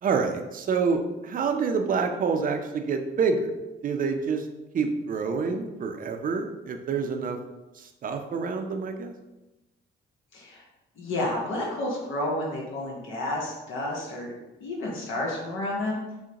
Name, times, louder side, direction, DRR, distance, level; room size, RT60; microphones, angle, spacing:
voice 1, 0.0-3.5 3.8-4.5 4.7-7.4 7.7-9.1, right 5 dB, 45° right, 5 dB, 0.5 m, -27 dB
voice 2, 10.3-10.6 11.0-14.3 14.6-16.0, left 1 dB, 80° left, -3 dB, 0.9 m, -30 dB
6.2 x 2.1 x 2.9 m, 1.0 s
cardioid pair, 90°, 20 cm